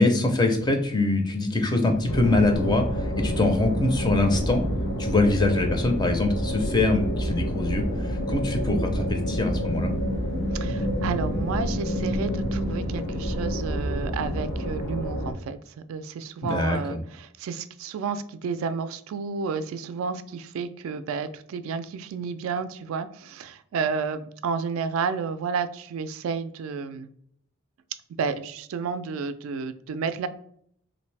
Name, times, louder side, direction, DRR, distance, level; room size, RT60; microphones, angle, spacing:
voice 1, 0.0-4.6 5.0-9.9 16.4-16.8, left 2 dB, 20° left, 4 dB, 0.4 m, -23 dB
sound 1, 2.0-14.5 14.9-15.0, equal, 80° left, 1.1 m, -39 dB
Post-Apocalyptic Ambience, 2.1-15.3, equal, 65° left, 0.7 m, -28 dB
voice 2, 10.5-27.1 28.2-30.3, right 5 dB, 80° right, 12 dB, 0.3 m, -31 dB
3.3 x 2.6 x 3.2 m, 0.66 s
head